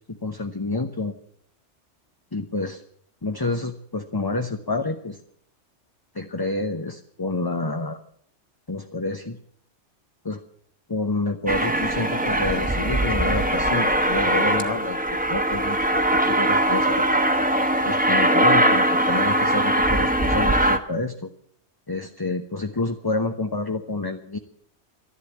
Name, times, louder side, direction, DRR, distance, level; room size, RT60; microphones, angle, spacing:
voice 1, 0.1-1.1 2.3-2.8 3.2-5.2 6.1-8.0 8.7-9.4 10.2-10.4 10.9-17.0 17.8-21.3 21.9-24.4, left 2 dB, 20° left, 5 dB, 0.9 m, -28 dB
Aircraft, 11.5-20.8, right 1 dB, 10° right, 1.0 m, -21 dB
13.0 x 11.5 x 8.5 m, 0.64 s
omnidirectional pair, 1.2 m